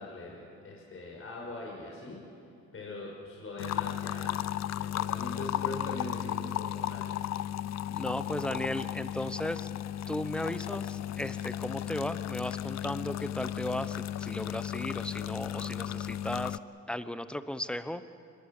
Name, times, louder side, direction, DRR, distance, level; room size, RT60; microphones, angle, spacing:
voice 1, 0.0-2.2 2.7-4.4 4.7-7.1, left 2 dB, 45° left, -2 dB, 5.8 m, -41 dB
sound 1, 3.6-16.6, left 12 dB, 60° left, 0.6 m, -35 dB
voice 2, 7.9-9.7 10.1-16.6 16.9-18.0, left 1 dB, 5° left, 12 dB, 1.1 m, -36 dB
25.5 x 21.5 x 7.4 m, 2.6 s
cardioid pair, 90°, 30 cm